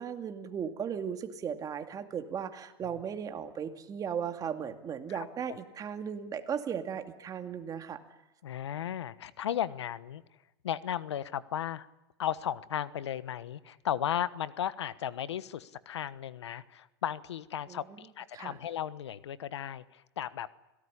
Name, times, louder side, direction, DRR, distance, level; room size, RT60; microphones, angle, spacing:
voice 1, 0.0-8.0 17.7-17.8 18.3-18.6, right 7 dB, 25° right, 7 dB, 2.4 m, -36 dB
voice 2, 8.4-10.2 10.6-11.9 12.2-20.5, left 10 dB, 90° left, 16 dB, 1.2 m, -35 dB
26.0 x 18.0 x 10.0 m, 0.98 s
hypercardioid pair, 125°, 14 cm